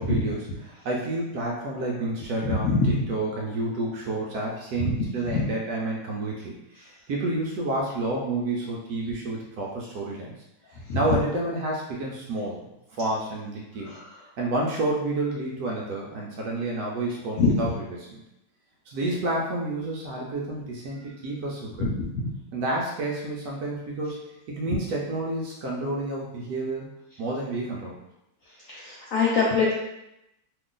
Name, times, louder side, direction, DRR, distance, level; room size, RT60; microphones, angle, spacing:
voice 1, 0.0-10.4 10.9-12.6 12.9-13.9 14.4-18.2 18.9-21.9 22.5-24.2 24.5-26.9 27.2-28.0, right 2 dB, 70° right, -2 dB, 1.0 m, -30 dB
voice 2, 2.4-2.9 4.8-4.9 5.3-5.4 10.9-11.0 17.4-17.5 28.7-29.7, left 4 dB, 75° left, -5 dB, 0.7 m, -23 dB
3.1 x 2.4 x 3.7 m, 0.88 s
omnidirectional pair, 2.0 m